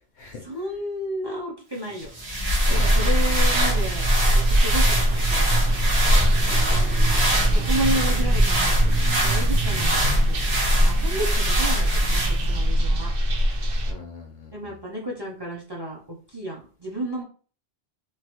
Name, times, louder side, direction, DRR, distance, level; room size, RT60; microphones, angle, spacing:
voice 1, 0.4-2.1 2.7-5.8 7.4-10.4 10.8-13.1 14.5-17.2, right 1 dB, 30° right, -1 dB, 0.6 m, -32 dB
sound 1, 2.0-12.6, right 1 dB, 85° right, 1.4 m, -25 dB
sound 2, 2.6-13.9, equal, 65° right, 0.8 m, -22 dB
voice 2, 2.7-3.1 6.2-6.9 11.1-11.3 13.8-14.7, left 3 dB, 60° left, 2 dB, 0.6 m, -41 dB
3.1 x 2.4 x 2.9 m, 0.40 s
omnidirectional pair, 1.1 m